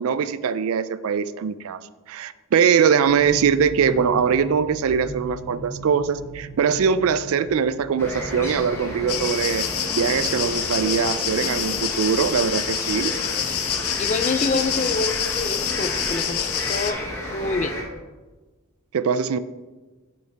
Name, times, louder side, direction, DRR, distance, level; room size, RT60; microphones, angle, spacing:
voice 1, 0.0-1.8 2.1-9.7 9.9-13.1 18.9-19.4, right 6 dB, 70° right, 15 dB, 0.3 m, -22 dB
sound 1, 3.1-10.4, right 1 dB, 30° right, 2.1 m, -39 dB
sound 2, 8.0-17.8, left 1 dB, 10° left, 1.2 m, -32 dB
sound 3, 9.1-16.9, left 9 dB, 80° left, 0.7 m, -27 dB
voice 2, 14.0-17.0 17.3-17.7, left 3 dB, 30° left, 10 dB, 0.3 m, -27 dB
10.0 x 5.4 x 3.4 m, 1.2 s
head